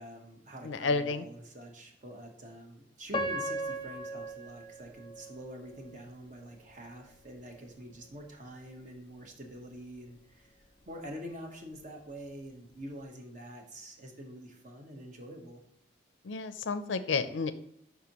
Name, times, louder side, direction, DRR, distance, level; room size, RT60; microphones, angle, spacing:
voice 1, 0.0-10.6 10.9-15.6, equal, 40° right, 2 dB, 1.1 m, -46 dB
voice 2, 0.6-1.2 16.2-17.5, left 4 dB, 85° left, 12 dB, 0.5 m, -31 dB
Piano, 3.1-6.1 6.7-6.8 7.5-7.7, right 1 dB, 25° left, 0.4 m, -37 dB
7.4 x 5.6 x 3.0 m, 0.70 s
head